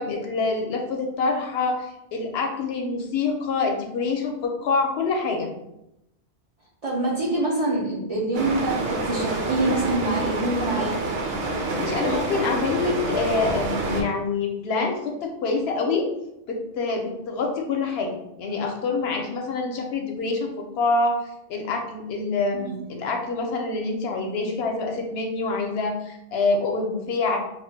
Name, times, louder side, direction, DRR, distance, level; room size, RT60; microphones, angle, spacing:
voice 1, 0.0-5.5 11.5-16.1 16.5-21.2 21.5-27.4, left 3 dB, 70° left, 2 dB, 0.8 m, -26 dB
voice 2, 6.8-11.0 22.5-22.7, right 2 dB, 55° right, -5 dB, 0.4 m, -25 dB
sound 1, 8.3-14.0, right 2 dB, 70° right, 0.8 m, -27 dB
2.3 x 2.1 x 3.9 m, 0.85 s
omnidirectional pair, 1.1 m